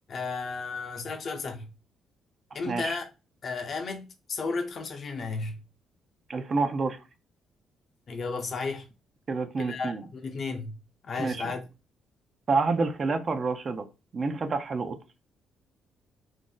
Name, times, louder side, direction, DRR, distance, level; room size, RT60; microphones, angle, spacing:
voice 1, 0.1-1.7 2.5-3.1 3.4-5.6 8.1-8.9 9.6-10.8 11.0-11.6, left 4 dB, 50° left, 0.6 m, -33 dB
voice 2, 2.7-3.0 6.3-7.0 9.3-10.0 11.2-11.5 12.5-13.9 14.1-15.0, right 4 dB, 45° right, 0.5 m, -28 dB
2.5 x 2.0 x 3.7 m
cardioid pair, 90°, 0 cm